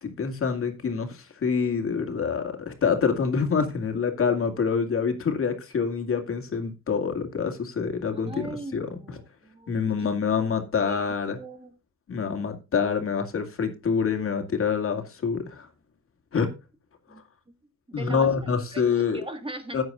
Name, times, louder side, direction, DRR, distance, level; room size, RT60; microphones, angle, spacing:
voice 1, 0.0-9.2 9.7-11.4 12.1-15.7 16.3-16.5 17.9-19.2 19.7-19.8, left 6 dB, 45° left, 2.3 m, -26 dB
voice 2, 8.1-10.1 10.8-11.0 11.4-11.7 17.1-17.2 17.9-19.8, right 1 dB, 20° right, 1.7 m, -40 dB
14.0 x 9.5 x 2.5 m
cardioid pair, 90°, 30 cm